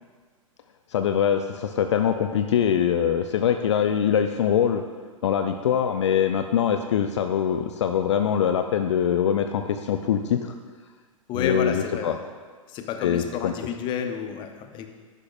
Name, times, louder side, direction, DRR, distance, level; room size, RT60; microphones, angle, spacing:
voice 1, 0.9-4.8 5.2-10.5 11.3-12.2 13.0-13.5, left 8 dB, 55° left, 7 dB, 0.6 m, -23 dB
voice 2, 11.3-12.2 12.7-14.9, left 8 dB, 25° left, 6 dB, 0.8 m, -30 dB
11.5 x 11.0 x 2.5 m, 1.5 s
figure-of-eight pair, 105°, 18 cm